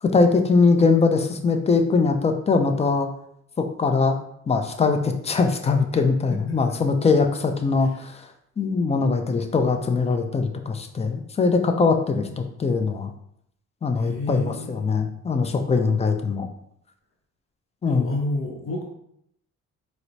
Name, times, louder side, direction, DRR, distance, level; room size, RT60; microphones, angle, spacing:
voice 1, 0.0-3.1 3.6-4.2 4.5-8.3 8.6-13.1 13.8-16.5 17.8-18.1, left 4 dB, 20° left, 6 dB, 0.4 m, -21 dB
voice 2, 14.0-15.0 17.9-18.8, left 2 dB, 45° left, 0 dB, 0.7 m, -30 dB
4.4 x 2.0 x 2.7 m, 0.73 s
cardioid pair, 90°, 30 cm